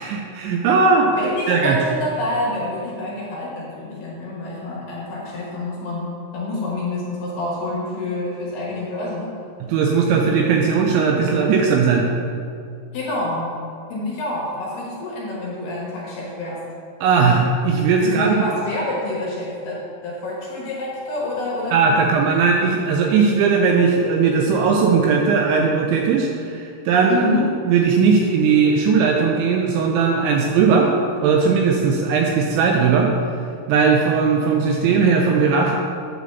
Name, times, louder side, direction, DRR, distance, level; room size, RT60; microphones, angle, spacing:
voice 1, 0.0-1.1 1.5-1.8 9.7-12.1 17.0-18.4 21.7-27.2 27.7-30.9 31.2-33.1 33.7-35.8, right 5 dB, 80° right, 1 dB, 2.7 m, -18 dB
voice 2, 1.1-9.3 12.9-13.6 13.9-16.6 18.0-22.1 27.1-27.5, left 1 dB, 65° left, -5 dB, 3.0 m, -27 dB
9.2 x 4.0 x 6.9 m, 2.3 s
omnidirectional pair, 5.7 m